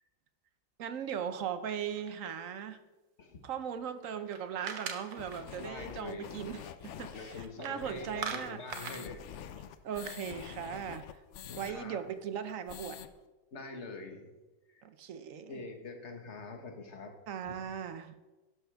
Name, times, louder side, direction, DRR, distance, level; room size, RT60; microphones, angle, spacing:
voice 1, 0.8-2.8 3.4-8.6 9.8-11.0 11.6-13.0 14.8-15.6 17.3-18.1, right 8 dB, 60° right, 11 dB, 0.9 m, -38 dB
sound 1, 1.7-2.6 4.0-5.6 7.4-7.8 8.0-9.0, right 6 dB, 90° right, 1.8 m, -41 dB
sound 2, 5.2-11.7 12.1-12.2 12.5-13.1, left 9 dB, 85° left, 0.6 m, -47 dB
voice 2, 5.6-6.3 6.9-9.3 9.6-9.7 11.4-12.0 13.5-14.3 14.7-14.8 15.5-17.2 17.4-17.5, left 3 dB, 40° left, 4 dB, 1.5 m, -45 dB
11.5 x 11.0 x 3.5 m, 1.1 s
omnidirectional pair, 1.9 m